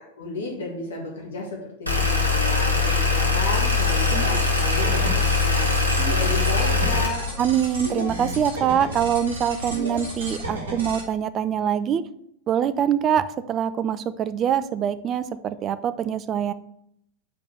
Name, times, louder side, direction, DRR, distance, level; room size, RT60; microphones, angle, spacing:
voice 1, 0.2-7.3, left 3 dB, 60° left, -1 dB, 1.8 m, -33 dB
sound 1, 1.9-7.1, left 3 dB, 90° right, 1.1 m, -21 dB
sound 2, 3.5-11.0, right 1 dB, 70° right, 1.9 m, -33 dB
voice 2, 7.4-12.0 12.5-16.5, right 9 dB, 30° right, 14 dB, 0.4 m, -24 dB
5.2 x 4.3 x 6.1 m, 0.74 s
figure-of-eight pair, 90°, 0 cm